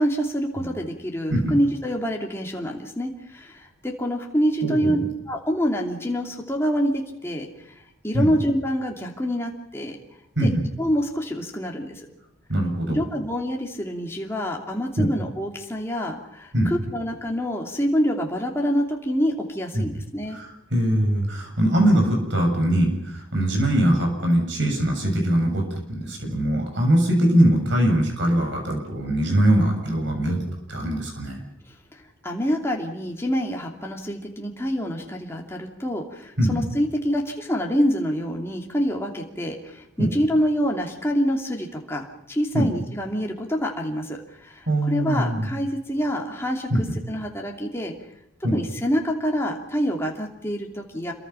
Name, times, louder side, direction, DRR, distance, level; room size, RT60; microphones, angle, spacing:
voice 1, 0.0-5.0 5.3-7.8 8.0-10.0 10.4-10.5 10.8-12.1 12.9-20.4 31.9-47.9 48.5-51.1, equal, 10° left, 0 dB, 2.8 m, -26 dB
voice 2, 4.6-4.9 8.1-8.3 10.4-10.6 12.5-13.0 15.0-15.1 16.5-16.7 19.7-19.9 20.3-20.4 20.7-30.4 30.7-31.4 36.4-36.7 40.0-40.1 42.5-42.7 44.7-45.5 46.7-46.8 48.4-48.6, right 1 dB, 60° right, 2 dB, 6.9 m, -22 dB
27.5 x 22.5 x 5.8 m, 0.84 s
head